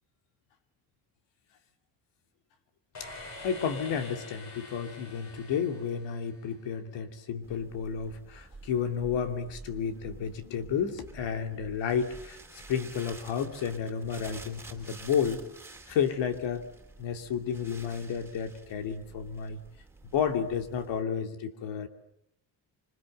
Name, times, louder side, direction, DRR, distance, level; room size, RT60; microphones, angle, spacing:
sound 1, 2.9-6.8, left 3 dB, 40° left, 7.8 m, -46 dB
voice 1, 3.4-15.4 15.9-16.7 17.0-19.6 20.1-21.9, left 7 dB, 85° left, 6 dB, 2.8 m, -31 dB
sound 2, 7.4-21.0, right 3 dB, 5° right, 3.1 m, -50 dB
26.5 x 25.5 x 7.9 m, 0.79 s
cardioid pair, 150°, 43 cm